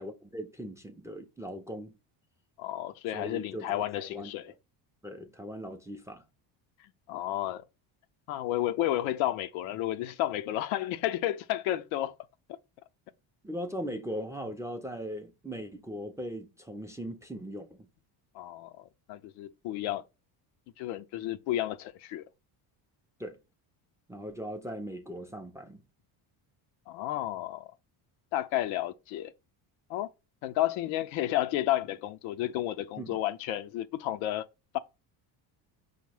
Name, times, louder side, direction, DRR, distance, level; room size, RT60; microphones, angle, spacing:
voice 1, 0.0-1.9 3.1-4.3 5.0-6.2 13.4-17.9 23.2-23.4 24.1-25.8 33.0-33.2, equal, 5° right, 0.4 m, -39 dB
voice 2, 2.6-4.5 7.1-7.6 8.3-12.1 18.3-20.0 20.8-22.2 26.9-27.7 28.3-29.3 29.9-30.1 30.4-34.5 34.7-34.8, left 13 dB, 80° left, 0.6 m, -32 dB
5.2 x 2.1 x 4.8 m
cardioid pair, 105°, 47 cm